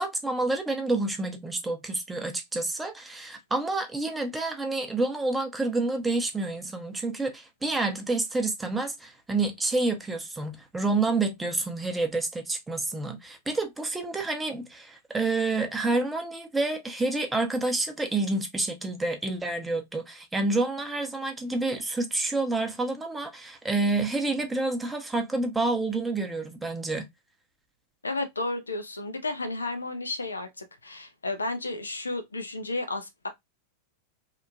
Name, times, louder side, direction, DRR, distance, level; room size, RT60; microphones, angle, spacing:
voice 1, 0.0-27.1, right 2 dB, 10° right, 0.6 m, -28 dB
voice 2, 28.0-33.3, left 2 dB, 75° left, 0.5 m, -32 dB
2.9 x 2.1 x 2.5 m
figure-of-eight pair, 90°, 0 cm